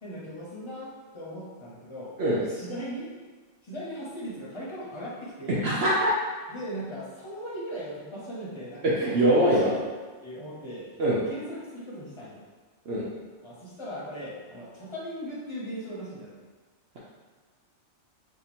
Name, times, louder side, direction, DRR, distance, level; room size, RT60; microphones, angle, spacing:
voice 1, 0.0-3.1 3.6-5.6 6.5-9.9 10.2-12.4 13.4-16.4, equal, 25° left, -6 dB, 0.8 m, -39 dB
voice 2, 5.6-6.1 9.0-9.7 11.0-11.2 12.9-13.0, right 1 dB, 60° right, -6 dB, 0.8 m, -22 dB
2.8 x 2.6 x 4.2 m, 1.4 s
omnidirectional pair, 1.3 m